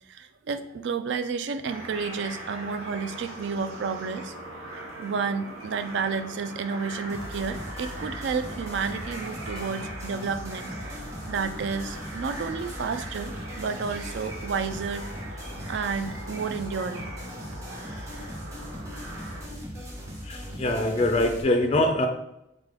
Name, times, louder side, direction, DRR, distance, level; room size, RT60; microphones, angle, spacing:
voice 1, 0.1-4.3 4.7-15.1 15.3-15.4 15.7-17.2, right 5 dB, 60° right, 10 dB, 0.3 m, -31 dB
sound 1, 1.6-19.5, right 1 dB, 85° right, 1.0 m, -41 dB
sound 2, 7.1-21.4, equal, 15° right, 1.0 m, -39 dB
voice 2, 20.3-22.1, left 1 dB, 30° left, 5 dB, 0.3 m, -24 dB
3.7 x 3.6 x 3.4 m, 0.82 s
head